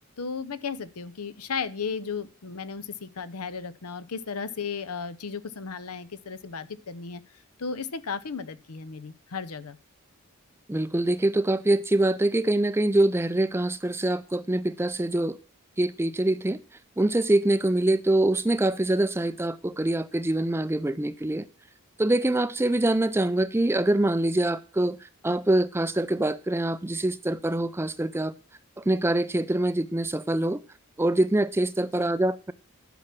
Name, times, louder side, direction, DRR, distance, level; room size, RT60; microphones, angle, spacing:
voice 1, 0.2-7.2 7.6-9.8 31.8-32.1, left 5 dB, 90° left, 0.8 m, -35 dB
voice 2, 10.7-15.4 15.8-16.6 17.0-21.5 22.0-25.0 25.2-28.3 28.8-30.6 31.0-32.5, right 1 dB, 10° right, 0.4 m, -24 dB
10.5 x 6.1 x 5.9 m
head